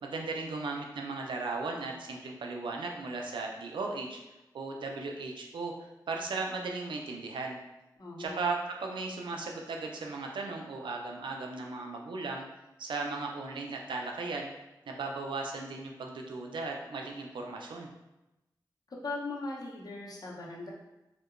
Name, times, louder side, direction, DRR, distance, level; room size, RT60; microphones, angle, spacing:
voice 1, 0.0-4.2 4.5-5.7 6.1-7.6 8.2-12.4 12.8-14.5 14.9-17.9, right 3 dB, 90° right, 1 dB, 0.3 m, -36 dB
voice 2, 8.0-8.4 19.0-20.7, left 3 dB, 55° left, -3 dB, 0.6 m, -39 dB
2.7 x 2.1 x 2.4 m, 0.98 s
cardioid pair, 45°, 8 cm